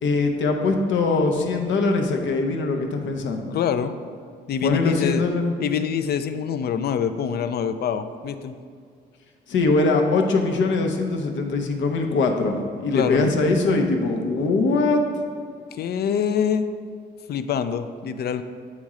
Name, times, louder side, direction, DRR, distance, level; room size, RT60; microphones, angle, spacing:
voice 1, 0.0-3.5 4.6-5.5 9.5-15.2, left 3 dB, 70° left, 4 dB, 0.8 m, -22 dB
voice 2, 3.5-3.9 4.5-5.2 5.6-8.5 12.9-13.3 15.7-16.7 17.3-18.4, left 8 dB, 55° left, 11 dB, 0.4 m, -25 dB
8.4 x 3.1 x 3.7 m, 2.1 s
cardioid pair, 90°, 20 cm